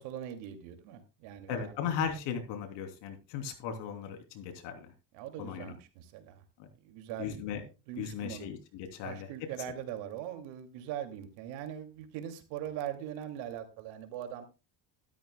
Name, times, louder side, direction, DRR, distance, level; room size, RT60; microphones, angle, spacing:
voice 1, 0.0-1.7 5.1-6.4 6.8-7.5 7.9-8.5 9.0-14.5, right 10 dB, 85° right, 7 dB, 2.5 m, -41 dB
voice 2, 1.5-4.9 5.4-5.7 6.6-6.7 7.2-7.6 8.0-9.3, left 7 dB, 75° left, 5 dB, 3.2 m, -37 dB
13.5 x 12.5 x 2.2 m, 0.28 s
cardioid pair, 135°, 43 cm